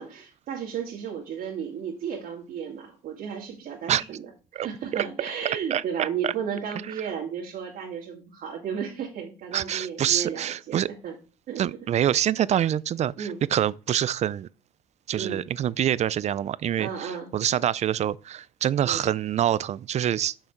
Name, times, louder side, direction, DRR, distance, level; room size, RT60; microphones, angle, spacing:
voice 1, 0.0-4.2 4.5-11.2 11.5-11.6 13.2-13.4 15.2-15.4 16.8-17.3 18.8-19.0, right 7 dB, 60° right, 2.2 m, -34 dB
voice 2, 5.7-6.3 9.5-10.9 11.6-14.5 15.1-20.3, right 10 dB, 40° right, 0.4 m, -26 dB
6.5 x 5.8 x 4.5 m
cardioid pair, 110°, 17 cm